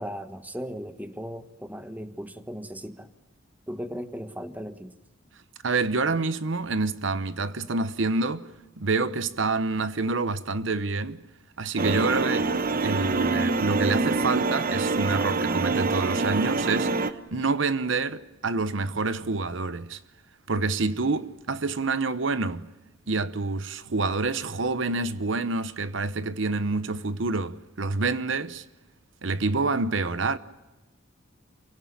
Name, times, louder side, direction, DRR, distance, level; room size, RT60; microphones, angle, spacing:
voice 1, 0.0-3.1 3.7-5.0, equal, 10° right, 1.3 m, -37 dB
voice 2, 5.6-8.5 8.8-11.2 11.6-12.5 12.8-16.9 17.3-20.0 20.5-22.7 23.1-28.6 29.2-30.4, right 3 dB, 65° right, 0.9 m, -27 dB
sound 1, 11.8-17.1, right 3 dB, 45° right, 1.2 m, -26 dB
28.5 x 17.5 x 8.7 m
head